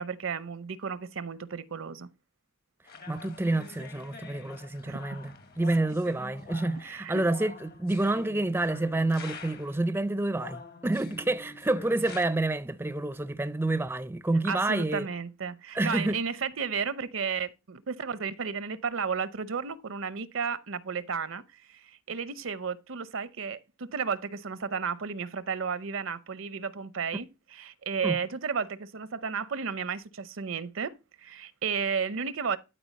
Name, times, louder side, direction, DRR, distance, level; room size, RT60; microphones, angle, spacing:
voice 1, 0.0-2.1 4.9-5.0 6.8-7.2 14.4-21.4 21.7-32.6, right 6 dB, 75° right, 0.7 m, -33 dB
sound 1, 2.9-9.8 10.3-12.3, left 4 dB, 50° left, 1.0 m, -46 dB
voice 2, 3.1-15.1 15.7-16.2 28.0-28.2, right 2 dB, 10° right, 0.4 m, -28 dB
12.5 x 4.4 x 4.1 m
head